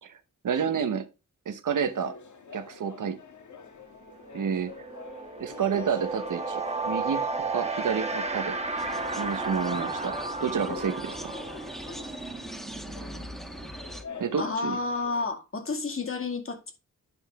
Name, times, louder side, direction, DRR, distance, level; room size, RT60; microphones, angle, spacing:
voice 1, 0.4-1.1 1.5-2.2 2.5-3.2 4.3-4.7 5.4-8.6 9.2-11.3 14.2-14.8, right 7 dB, 85° right, 1.1 m, -30 dB
sound 1, 1.9-15.3, left 5 dB, 70° left, 1.5 m, -45 dB
sound 2, 3.5-3.7 4.0-14.6, right 3 dB, 20° right, 1.2 m, -34 dB
sound 3, 8.8-14.0, equal, ahead, 1.3 m, -42 dB
voice 2, 14.4-16.7, left 3 dB, 45° left, 2.1 m, -31 dB
9.7 x 5.8 x 3.5 m
wide cardioid pair, 140°, 31 cm